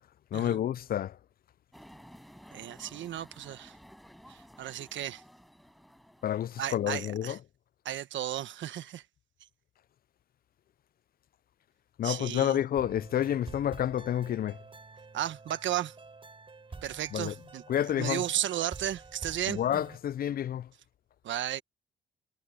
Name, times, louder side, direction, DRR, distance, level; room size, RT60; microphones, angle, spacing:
voice 1, 0.3-1.2 6.2-7.4 12.0-14.6 17.1-17.3 17.7-18.2 19.5-20.7, left 10 dB, 50° left, 0.4 m, -29 dB
sound 1, 1.7-7.1, equal, ahead, 7.5 m, -54 dB
voice 2, 2.5-3.7 4.3-5.2 6.6-7.4 7.8-9.0 12.0-12.6 15.1-15.9 16.8-17.6 18.0-19.6 21.2-21.6, right 12 dB, 70° right, 1.3 m, -34 dB
sound 2, 12.7-20.0, right 3 dB, 25° right, 4.3 m, -48 dB
cardioid pair, 90°, 20 cm